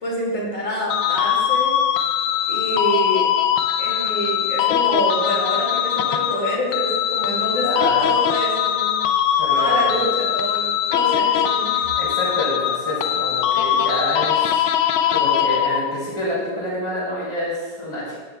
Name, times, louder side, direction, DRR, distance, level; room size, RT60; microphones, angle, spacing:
voice 1, 0.0-1.7 2.5-3.3 3.8-8.9 9.5-11.9, equal, 40° left, -5 dB, 2.7 m, -26 dB
sound 1, 0.9-16.1, left 10 dB, 80° left, 1.4 m, -21 dB
voice 2, 7.5-8.2 9.3-10.0 12.0-14.7 15.1-18.2, left 1 dB, 15° left, -7 dB, 2.7 m, -27 dB
13.5 x 7.2 x 2.3 m, 1.4 s
omnidirectional pair, 2.2 m